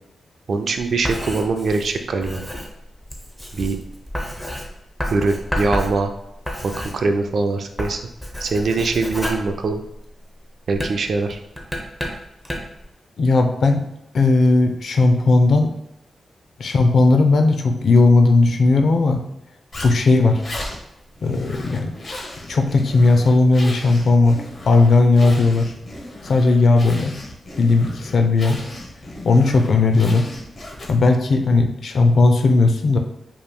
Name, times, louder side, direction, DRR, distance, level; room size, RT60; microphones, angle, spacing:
voice 1, 0.5-2.4 3.5-3.8 5.1-6.1 6.6-8.0 8.4-9.8 10.7-11.4, right 3 dB, 60° right, 5 dB, 0.4 m, -22 dB
Writing, 0.8-7.4 7.7-10.2 10.7-12.8, equal, 5° left, 0.7 m, -30 dB
voice 2, 13.2-13.8 14.1-15.7 16.6-19.2 19.8-20.4 21.2-21.9 22.5-24.4 24.7-25.7 26.2-27.1 27.6-28.6 29.2-30.3 30.9-33.0, left 3 dB, 60° left, 5 dB, 0.5 m, -16 dB
Zipper (clothing), 19.7-31.2, left 1 dB, 45° left, 0.9 m, -36 dB
5.2 x 3.0 x 2.3 m, 0.87 s
wide cardioid pair, 130°, 0 cm